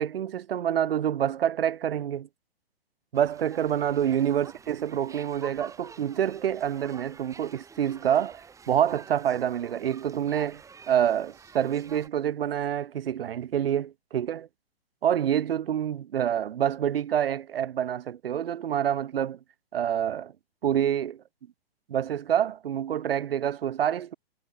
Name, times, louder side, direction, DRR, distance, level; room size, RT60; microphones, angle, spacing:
voice 1, 0.0-2.3 3.1-14.5 15.0-19.4 19.7-20.3 20.6-21.2 21.9-24.1, right 9 dB, 65° right, 1.0 m, -27 dB
sound 1, 3.1-12.1, right 5 dB, 10° right, 2.5 m, -48 dB
hypercardioid pair, 130°, 31 cm